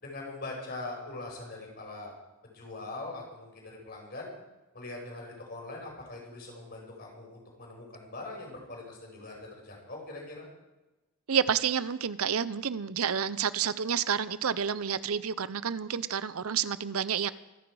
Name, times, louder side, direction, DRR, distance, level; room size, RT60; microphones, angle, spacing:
voice 1, 0.0-2.1 2.4-4.3 4.7-10.5, left 2 dB, 45° left, 0 dB, 5.1 m, -42 dB
voice 2, 11.3-17.3, right 7 dB, 80° right, 15 dB, 0.6 m, -29 dB
25.0 x 10.0 x 4.8 m, 1.1 s
head